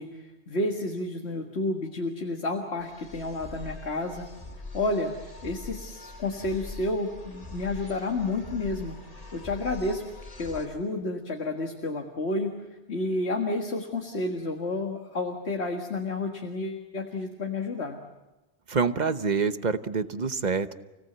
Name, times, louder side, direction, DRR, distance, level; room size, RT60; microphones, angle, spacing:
voice 1, 0.0-4.2 4.7-5.1 5.4-9.0 9.3-10.0 10.4-12.5 12.9-18.0, left 2 dB, 70° left, 3 dB, 2.1 m, -30 dB
sound 1, 2.8-10.7, left 2 dB, 35° left, 1.8 m, -43 dB
voice 2, 18.7-20.8, right 5 dB, 45° right, 11 dB, 1.1 m, -26 dB
30.0 x 18.0 x 8.0 m, 1.1 s
omnidirectional pair, 1.1 m